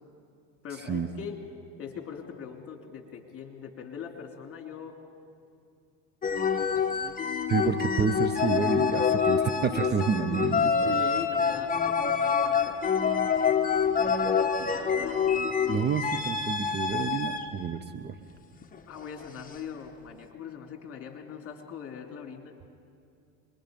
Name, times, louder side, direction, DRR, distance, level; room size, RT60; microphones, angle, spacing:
voice 1, 0.6-1.4 1.8-4.9 6.4-7.2 10.8-13.1 13.9-15.5 18.9-22.5, left 7 dB, 35° left, 3 dB, 3.0 m, -41 dB
sound 1, 6.2-17.5 18.7-19.0, left 6 dB, 20° left, 1.4 m, -26 dB
voice 2, 7.5-10.7 15.7-18.2, right 6 dB, 25° right, 10 dB, 0.8 m, -29 dB
26.0 x 21.5 x 5.2 m, 2.4 s
supercardioid pair, 105°, 37 cm